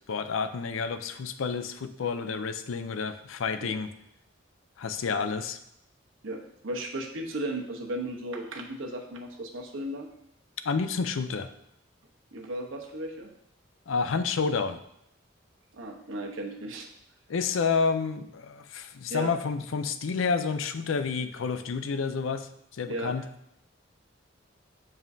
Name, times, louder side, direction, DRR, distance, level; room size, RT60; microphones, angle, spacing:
voice 1, 0.1-3.9 4.8-5.6 10.6-11.5 13.9-14.8 17.3-23.2, left 5 dB, 90° left, 11 dB, 0.5 m, -29 dB
voice 2, 6.2-10.1 12.3-13.3 15.7-16.9 19.1-19.3 22.9-23.1, right 1 dB, 85° right, 1 dB, 1.0 m, -35 dB
7.3 x 5.4 x 2.7 m, 0.76 s
head